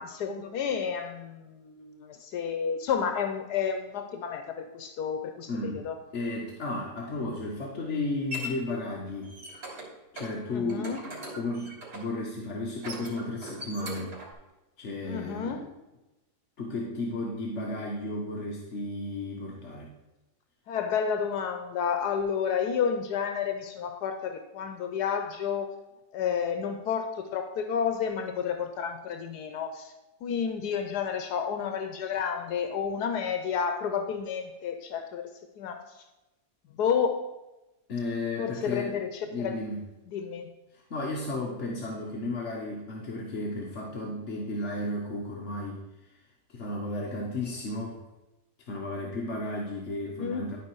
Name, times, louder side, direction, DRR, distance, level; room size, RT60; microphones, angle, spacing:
voice 1, 0.0-6.0 10.5-11.0 15.0-15.7 20.7-25.7 26.1-29.9 30.2-35.3 35.6-36.0 36.7-37.4 38.4-39.5 40.1-40.5 50.1-50.5, left 7 dB, 80° left, 7 dB, 1.3 m, -31 dB
voice 2, 5.5-9.3 10.1-10.9 11.4-14.2 14.8-15.6 16.6-19.9 37.9-39.0 39.3-39.9 40.7-46.1 46.5-48.0 48.7-50.6, left 2 dB, 50° left, -2 dB, 1.3 m, -34 dB
sound 1, 7.7-8.5 9.1-9.9 10.2-10.3 10.7-12.1 12.7-14.3, equal, 85° right, 3.7 m, -40 dB
11.5 x 4.7 x 4.6 m, 1.0 s
omnidirectional pair, 1.7 m